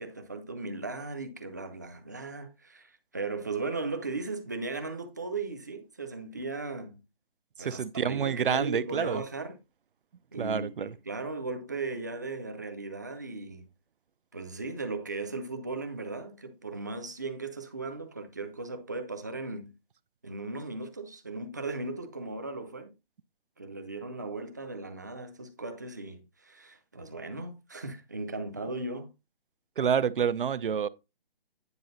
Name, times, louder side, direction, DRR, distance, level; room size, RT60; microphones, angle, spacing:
voice 1, 0.0-7.0 7.6-9.6 10.3-13.6 14.3-19.7 20.2-22.9 23.6-29.1, right 3 dB, 20° right, 0.6 m, -37 dB
voice 2, 7.6-9.2 10.4-10.9 29.8-30.9, right 7 dB, 60° right, 0.6 m, -28 dB
9.7 x 4.8 x 4.0 m
hypercardioid pair, 175°, 29 cm